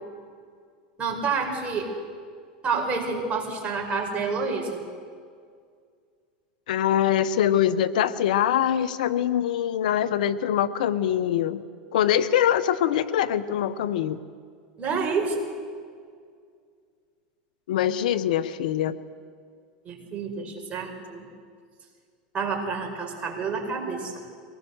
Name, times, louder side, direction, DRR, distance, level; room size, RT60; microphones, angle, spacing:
voice 1, 1.0-1.9 2.6-4.8 14.8-15.4 19.9-21.3 22.3-24.3, right 4 dB, 30° right, 1 dB, 5.3 m, -28 dB
voice 2, 6.7-11.6 11.9-14.2 17.7-19.0, left 10 dB, 80° left, 16 dB, 0.9 m, -23 dB
23.5 x 18.5 x 8.0 m, 2.1 s
hypercardioid pair, 105°, 4 cm